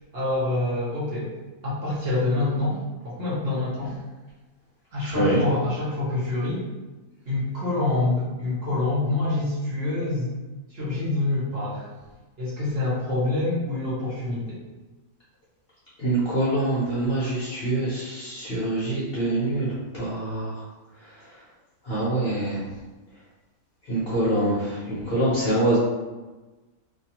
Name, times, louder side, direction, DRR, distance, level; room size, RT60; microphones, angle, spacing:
voice 1, 0.1-1.3 1.6-3.9 4.9-6.6 7.3-10.3 10.7-11.9 12.4-14.6, left 2 dB, 45° right, -9 dB, 1.0 m, -26 dB
voice 2, 5.0-5.4 16.0-20.6 21.8-22.6 23.9-25.8, right 1 dB, 55° left, -9 dB, 0.7 m, -25 dB
2.6 x 2.3 x 2.9 m, 1.2 s
omnidirectional pair, 1.6 m